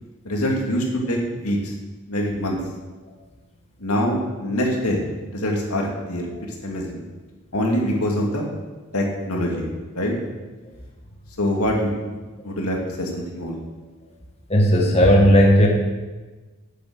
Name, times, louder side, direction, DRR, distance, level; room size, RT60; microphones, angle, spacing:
voice 1, 0.2-1.7 2.1-2.6 3.8-5.0 5.3-7.0 7.5-8.4 8.9-9.7 9.9-10.1 11.4-11.9 12.4-13.6, equal, 85° left, -1 dB, 2.5 m, -24 dB
voice 2, 14.5-15.7, equal, 30° left, -1 dB, 1.6 m, -16 dB
9.2 x 7.5 x 8.0 m, 1.3 s
head